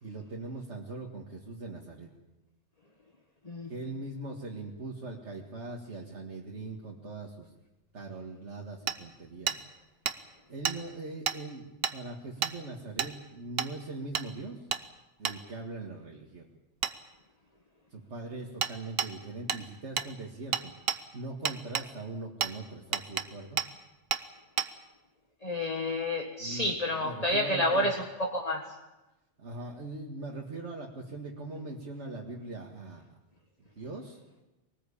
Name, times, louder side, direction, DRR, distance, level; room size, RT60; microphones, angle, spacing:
voice 1, 0.0-2.1 3.7-7.5 7.9-9.6 10.5-14.7 15.2-16.5 17.9-23.6 26.4-26.7 27.0-28.0 29.4-33.0 33.6-34.2, right 2 dB, 75° right, -1 dB, 2.3 m, -41 dB
Hammer, 8.9-9.0 9.5-9.6 10.1-10.2 10.6-10.8 11.3-11.4 11.8-12.0 12.4-12.5 13.0-13.1 13.6-13.7 14.1-14.3 14.7-14.8 15.2-15.4 16.8-16.9 18.6-18.7 19.0-19.1 19.5-19.6 20.0-20.1 20.5-21.0 21.5-21.9 22.4-22.5 22.9-23.3 23.6-23.7 24.1-24.2 24.6-24.7, right 7 dB, 55° right, 1.2 m, -30 dB
voice 2, 25.4-28.7, left 1 dB, 35° left, 1 dB, 1.7 m, -29 dB
23.0 x 19.0 x 8.5 m, 1.0 s
omnidirectional pair, 1.2 m